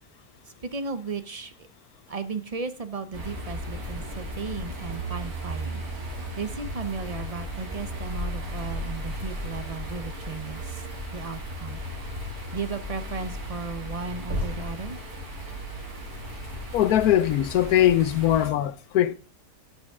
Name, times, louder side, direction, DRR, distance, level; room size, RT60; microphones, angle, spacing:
voice 1, 0.6-1.5 2.1-5.8 6.4-10.8 11.1-11.8 12.5-15.0, right 4 dB, 40° right, 0.5 m, -35 dB
sound 1, 3.1-18.5, equal, 80° right, 3.0 m, -35 dB
voice 2, 16.7-19.2, left 11 dB, 85° left, 1.2 m, -21 dB
17.0 x 6.4 x 3.6 m
omnidirectional pair, 1.5 m